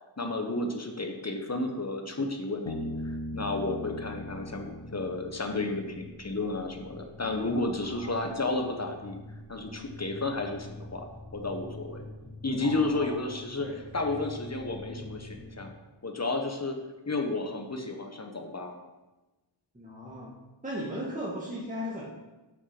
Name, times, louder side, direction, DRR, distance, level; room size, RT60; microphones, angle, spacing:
voice 1, 0.2-9.2 9.5-11.1 11.3-12.1 12.4-13.7 13.9-15.7 16.0-16.8 17.1-18.8, left 2 dB, 30° left, 4 dB, 1.3 m, -32 dB
sound 1, 2.1-15.7, left 1 dB, 10° left, 1.7 m, -47 dB
Bass guitar, 2.7-6.2, left 1 dB, 85° left, 1.4 m, -39 dB
voice 2, 7.8-8.3 12.6-13.2 13.6-14.2 19.7-20.3 20.6-22.1, equal, 15° right, -6 dB, 1.9 m, -37 dB
7.6 x 6.4 x 6.1 m, 1.1 s
wide cardioid pair, 85°, 49 cm